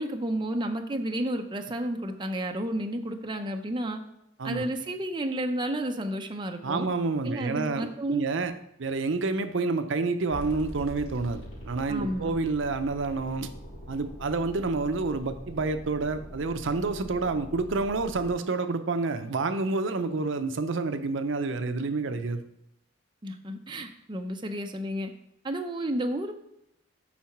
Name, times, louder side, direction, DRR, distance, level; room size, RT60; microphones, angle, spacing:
voice 1, 0.0-4.0 4.4-6.9 7.2-8.3 11.9-12.3 23.2-25.1 25.4-26.3, right 1 dB, 20° right, 4 dB, 0.5 m, -31 dB
voice 2, 6.6-8.5 8.8-13.5 13.9-22.4, right 3 dB, 65° right, 9 dB, 0.6 m, -29 dB
sound 1, 10.3-18.3, equal, 35° left, 3.4 m, -43 dB
7.4 x 4.7 x 5.9 m, 0.81 s
head